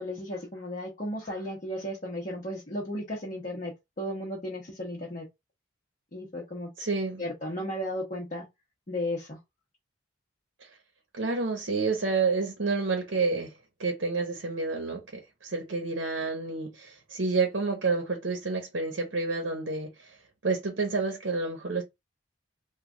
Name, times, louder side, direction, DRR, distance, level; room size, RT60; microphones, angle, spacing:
voice 1, 0.0-5.3 6.1-6.7 7.2-8.4 8.9-9.4, left 1 dB, 40° left, 0.9 m, -34 dB
voice 2, 6.8-7.2 10.6-10.7 11.1-13.5 13.8-20.2 20.4-21.8, right 4 dB, 65° right, 0.8 m, -29 dB
3.2 x 2.3 x 3.6 m
head